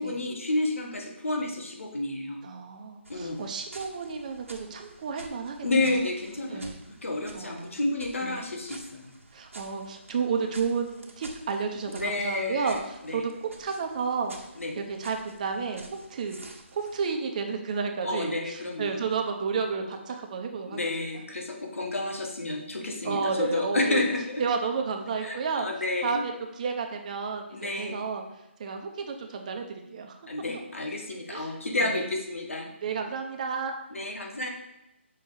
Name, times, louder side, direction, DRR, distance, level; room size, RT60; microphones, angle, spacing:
voice 1, 0.0-2.4 3.1-3.4 5.6-6.8 7.0-9.1 11.9-13.2 14.6-14.7 18.0-19.0 20.7-24.4 25.2-26.2 27.5-28.0 30.3-32.7 33.9-34.5, left 2 dB, 85° left, 2 dB, 1.6 m, -30 dB
voice 2, 2.4-6.0 6.5-6.8 7.3-7.8 8.2-8.5 9.3-14.4 14.7-16.4 16.7-20.8 23.0-24.0 24.4-25.7 26.0-28.2 28.6-30.2 31.3-31.5 31.8-32.1 32.8-33.7, right 5 dB, 35° right, 4 dB, 0.9 m, -32 dB
sound 1, 3.0-17.1, right 2 dB, 85° right, 1.5 m, -49 dB
6.3 x 4.5 x 4.9 m, 0.90 s
hypercardioid pair, 160°, 7 cm